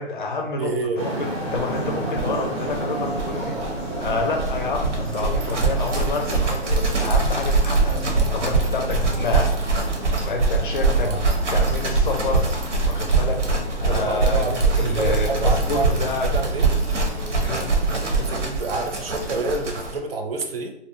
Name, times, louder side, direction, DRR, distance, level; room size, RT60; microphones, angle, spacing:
voice 1, 0.0-3.6 4.0-9.5 10.2-11.1 11.5-12.5 12.8-13.4 13.8-14.4 14.8-16.3 17.4-17.7, left 3 dB, 45° left, 3 dB, 0.4 m, -28 dB
voice 2, 0.6-1.2 10.8-11.2 13.8-16.7 18.1-20.7, right 3 dB, 60° right, 4 dB, 0.5 m, -28 dB
sound 1, 1.0-18.4, right 1 dB, 10° right, 0.5 m, -33 dB
sound 2, 1.6-1.7 1.9-2.0 2.1-20.0, right 3 dB, 85° right, 0.8 m, -23 dB
2.6 x 2.0 x 2.5 m, 0.79 s
hypercardioid pair, 155°, 34 cm